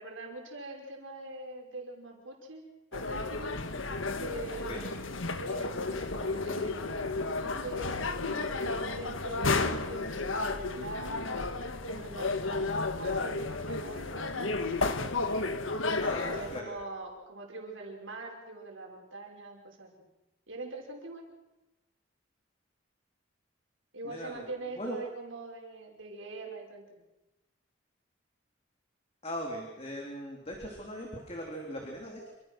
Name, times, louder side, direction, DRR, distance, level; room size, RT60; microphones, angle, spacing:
voice 1, 0.0-2.6 2.9-3.6 4.2-4.9 5.4-11.4 11.9-14.7 16.2-19.9 20.5-21.3 23.9-27.0, right 2 dB, 80° right, 0 dB, 5.4 m, -43 dB
sound 1, 2.9-16.6, left 3 dB, 85° left, 1.7 m, -32 dB
voice 2, 16.0-16.7 24.0-24.5 24.7-25.0 29.2-32.3, equal, 30° left, 0 dB, 3.7 m, -39 dB
27.5 x 26.5 x 6.2 m, 1.0 s
head